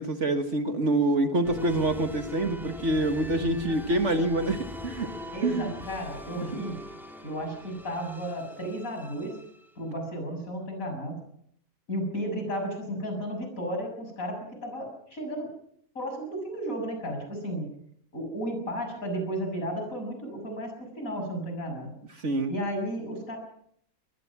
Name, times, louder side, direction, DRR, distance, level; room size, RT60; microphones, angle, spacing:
voice 1, 0.0-5.1 5.4-5.7 6.5-6.6 22.2-22.5, right 1 dB, 50° right, 7 dB, 1.9 m, -26 dB
sound 1, 1.4-9.8, left 1 dB, ahead, 2.8 m, -42 dB
voice 2, 5.3-6.8 7.2-9.4 9.8-11.2 11.9-15.5 16.0-17.7 18.1-21.9 22.5-23.4, equal, 60° left, 4 dB, 7.2 m, -33 dB
23.0 x 21.0 x 6.0 m, 0.70 s
omnidirectional pair, 1.6 m